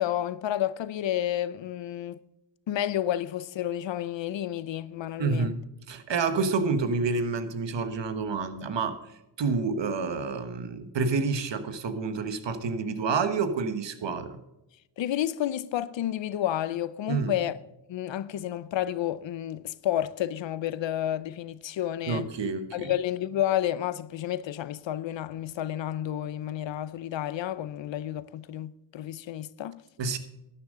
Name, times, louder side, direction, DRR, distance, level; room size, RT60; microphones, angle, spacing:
voice 1, 0.0-2.2 2.7-5.6 15.0-17.6 17.9-22.3 22.7-29.8, left 12 dB, 90° left, 0.6 m, -30 dB
voice 2, 5.2-14.4 17.1-17.3 22.1-22.9 30.0-30.2, right 4 dB, 75° right, 1.3 m, -29 dB
13.0 x 10.0 x 3.7 m
cardioid pair, 75°, 44 cm